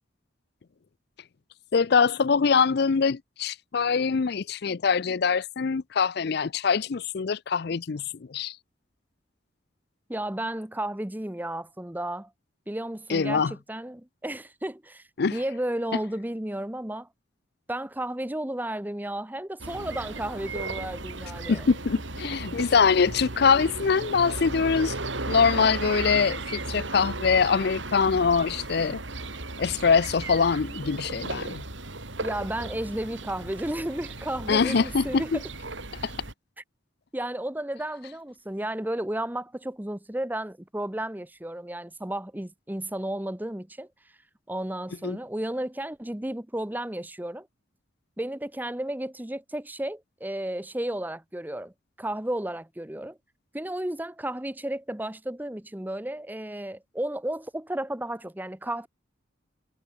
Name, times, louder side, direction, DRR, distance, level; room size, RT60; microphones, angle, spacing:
voice 1, 1.7-8.0 8.3-8.6 13.1-13.5 15.2-15.4 21.5-24.9 25.3-29.0 29.6-31.6 34.5-35.4 36.0-36.1 45.0-45.2, left 5 dB, 55° left, 0.5 m, -23 dB
voice 2, 10.1-12.3 12.7-15.0 15.3-17.1 17.7-21.7 32.2-35.4 37.1-43.9 44.5-47.5 48.2-51.7 52.0-53.2 53.5-58.9, right 1 dB, 10° right, 0.8 m, -33 dB
sound 1, 19.6-36.3, right 2 dB, 75° right, 4.1 m, -36 dB
head